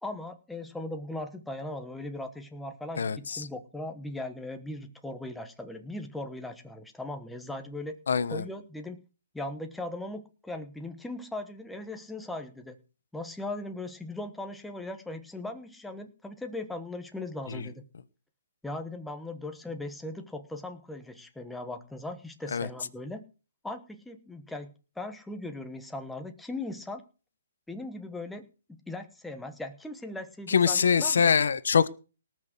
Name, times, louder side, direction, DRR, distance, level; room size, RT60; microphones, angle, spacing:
voice 1, 0.0-8.0 8.3-9.0 9.3-12.8 13.1-17.8 18.6-23.2 23.6-24.7 25.0-27.0 27.7-28.5 28.9-31.3, left 2 dB, 5° left, 5 dB, 1.2 m, -38 dB
voice 2, 3.0-3.4 8.1-8.4 17.5-17.7 22.5-22.7 30.5-31.9, left 6 dB, 70° left, 13 dB, 1.1 m, -24 dB
19.0 x 6.3 x 6.2 m, 0.35 s
hypercardioid pair, 165°, 0 cm